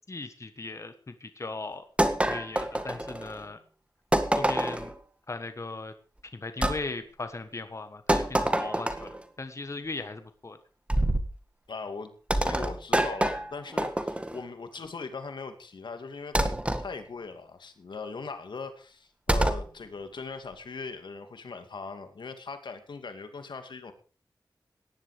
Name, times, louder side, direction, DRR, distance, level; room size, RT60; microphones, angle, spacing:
voice 1, 0.1-1.8 2.3-3.6 4.4-4.9 5.3-5.9 6.3-10.6, left 3 dB, 40° left, 9 dB, 1.4 m, -38 dB
sound 1, 2.0-3.4 4.1-4.9 6.6-6.8 8.1-9.2 10.9-11.3 12.3-14.4 16.3-16.8 19.3-19.7, right 1 dB, 15° right, 1.8 m, -26 dB
voice 2, 11.7-12.1 12.4-16.5 16.8-23.9, left 4 dB, 80° left, 8 dB, 2.4 m, -40 dB
18.0 x 11.0 x 5.1 m, 0.38 s
wide cardioid pair, 85°, 8 cm